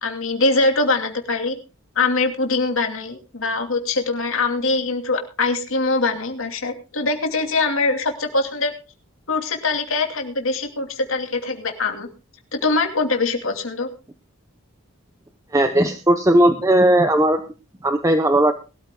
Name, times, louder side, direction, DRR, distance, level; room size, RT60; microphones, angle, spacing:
voice 1, 0.0-1.6 2.0-8.7 9.3-12.1 12.5-13.9, left 3 dB, 70° left, 4 dB, 2.7 m, -22 dB
voice 2, 15.5-17.4 17.8-18.5, right 1 dB, 15° right, 6 dB, 0.8 m, -17 dB
22.0 x 13.0 x 2.3 m, 0.31 s
head